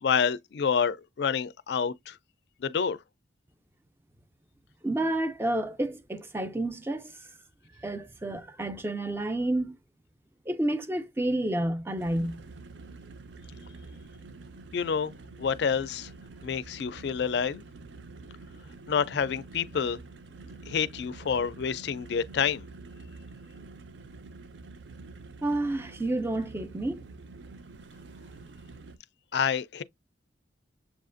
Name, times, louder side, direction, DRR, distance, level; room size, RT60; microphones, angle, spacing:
voice 1, 0.0-2.2 2.6-3.0 14.7-15.1 15.4-16.1 16.4-17.6 18.9-20.0 20.7-22.6 29.3-29.8, left 6 dB, 60° left, 0.4 m, -28 dB
voice 2, 4.8-7.3 7.8-9.7 10.5-12.4 25.4-27.0, right 1 dB, 10° right, 0.4 m, -30 dB
sound 1, 12.0-29.0, right 3 dB, 65° right, 0.5 m, -47 dB
7.0 x 2.4 x 2.5 m
head